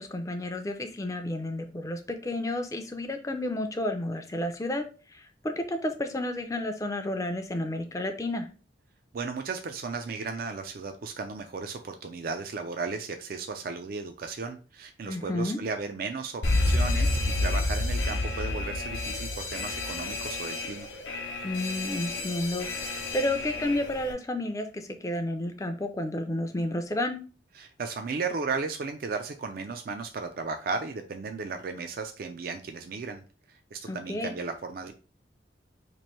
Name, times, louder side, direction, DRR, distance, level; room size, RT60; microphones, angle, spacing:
voice 1, 0.0-4.9 5.1-8.5 15.1-15.6 21.4-27.2 33.9-34.3, left 1 dB, 15° left, 6 dB, 0.4 m, -31 dB
voice 2, 9.1-20.9 27.5-34.9, right 4 dB, 50° right, 6 dB, 0.4 m, -35 dB
Alarm, 16.4-24.1, left 2 dB, 80° left, 0.7 m, -29 dB
3.1 x 2.6 x 4.3 m, 0.36 s
head